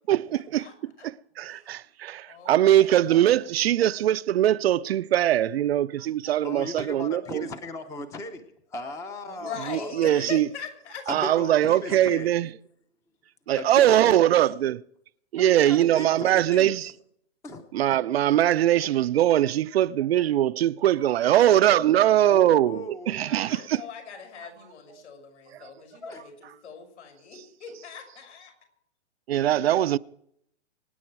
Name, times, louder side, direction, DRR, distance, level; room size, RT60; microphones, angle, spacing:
voice 1, 0.1-0.7 1.0-7.5 9.7-10.5 11.1-12.5 13.5-14.8 15.3-16.9 17.7-23.8 25.5-25.7 29.3-30.0, right 12 dB, 60° right, 0.6 m, -22 dB
voice 2, 1.4-1.8 2.3-3.4 9.3-11.1 23.2-28.5, left 7 dB, 70° left, 6.2 m, -42 dB
voice 3, 6.4-10.3 11.1-12.3 13.6-14.2 15.4-16.8 17.4-17.6 21.2-21.6 22.3-23.7 26.0-26.2, left 2 dB, 10° left, 0.7 m, -37 dB
25.0 x 9.7 x 4.6 m
hypercardioid pair, 150°, 36 cm